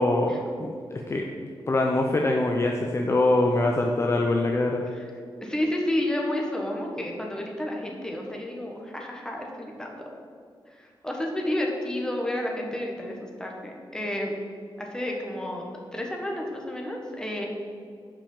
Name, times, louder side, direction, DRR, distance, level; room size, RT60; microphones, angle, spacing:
voice 1, 0.0-4.8, left 2 dB, 30° left, 2 dB, 0.6 m, -24 dB
voice 2, 5.4-10.0 10.8-14.3 14.8-15.6 15.9-17.5, left 1 dB, 10° left, 0 dB, 1.4 m, -31 dB
7.4 x 5.4 x 7.2 m, 2.2 s
wide cardioid pair, 135°, 9 cm